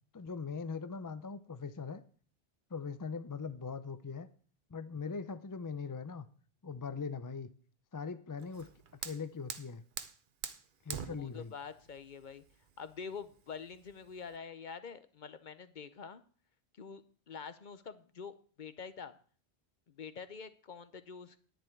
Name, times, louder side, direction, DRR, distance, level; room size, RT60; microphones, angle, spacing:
voice 1, 0.1-2.0 2.7-4.3 4.7-6.3 6.6-7.5 7.9-8.7 9.0-9.8 10.9-11.5, left 5 dB, 30° left, 12 dB, 0.4 m, -41 dB
Fire, 8.4-14.4, right 7 dB, 55° right, 0.9 m, -46 dB
voice 2, 11.1-12.4 12.8-16.2 16.8-19.1 19.9-21.5, left 6 dB, 50° left, 13 dB, 0.8 m, -46 dB
10.5 x 10.0 x 4.5 m, 0.42 s
omnidirectional pair, 1.1 m